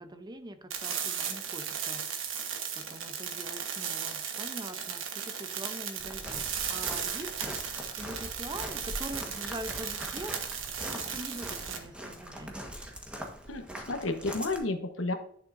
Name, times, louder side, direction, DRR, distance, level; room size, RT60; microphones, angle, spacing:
voice 1, 0.0-2.3 2.7-7.6 8.0-12.8, right 1 dB, 20° right, 9 dB, 0.7 m, -44 dB
sound 1, 0.7-11.8, right 7 dB, 80° right, 1.3 m, -36 dB
Walk footsteps, 6.0-14.6, equal, 5° right, 1.3 m, -42 dB
voice 2, 13.5-15.1, left 2 dB, 80° left, 6 dB, 1.1 m, -32 dB
11.0 x 6.7 x 2.6 m, 0.66 s
head